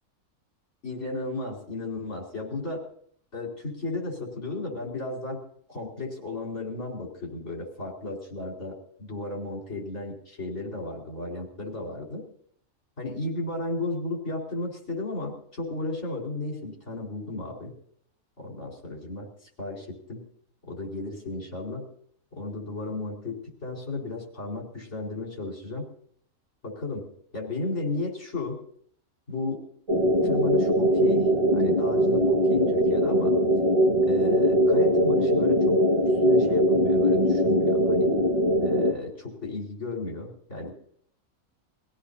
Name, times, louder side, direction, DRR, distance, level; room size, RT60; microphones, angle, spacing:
voice 1, 0.8-2.9 3.3-5.4 5.7-12.2 13.0-17.7 18.4-19.3 19.6-20.2 20.6-21.8 22.3-25.9 26.6-27.1 27.3-28.6 29.3-29.6 30.2-31.3 31.5-33.3 34.0-38.1 38.6-40.7, left 2 dB, 55° left, -2 dB, 5.0 m, -34 dB
sound 1, 29.9-38.9, equal, 25° right, 1.7 m, -21 dB
25.0 x 16.5 x 2.8 m, 0.64 s
omnidirectional pair, 1.5 m